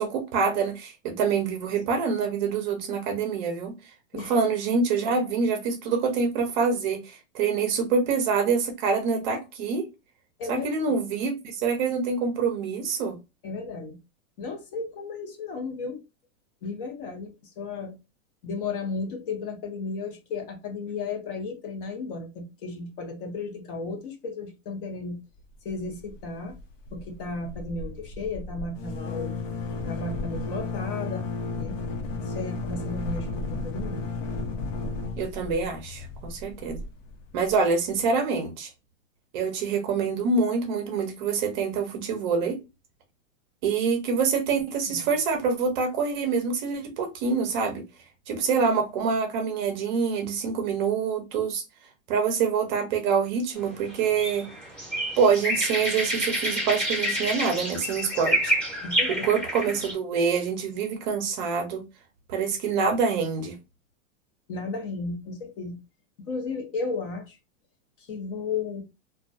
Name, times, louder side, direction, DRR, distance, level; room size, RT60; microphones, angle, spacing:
voice 1, 0.0-3.7 4.1-9.9 10.5-13.2 35.2-36.8 37.3-38.7 39.3-42.6 43.6-47.8 48.3-51.6 52.1-54.5 55.2-58.5 59.1-61.8 62.3-63.5, right 5 dB, 35° right, 0.6 m, -26 dB
voice 2, 10.4-10.9 13.4-14.0 14.4-16.0 16.6-18.0 18.4-25.2 25.6-26.6 26.9-29.4 29.8-31.3 31.6-31.8 32.2-34.1 44.9-45.0 58.8-59.3 64.5-65.8 66.3-67.4 68.0-68.8, left 4 dB, 45° left, 0.7 m, -34 dB
sound 1, 25.7-26.2 26.5-26.6 26.9-37.5, left 3 dB, 75° left, 0.9 m, -33 dB
sound 2, 53.6-59.9, equal, 5° left, 0.7 m, -28 dB
2.2 x 2.2 x 2.5 m
hypercardioid pair, 150°, 39 cm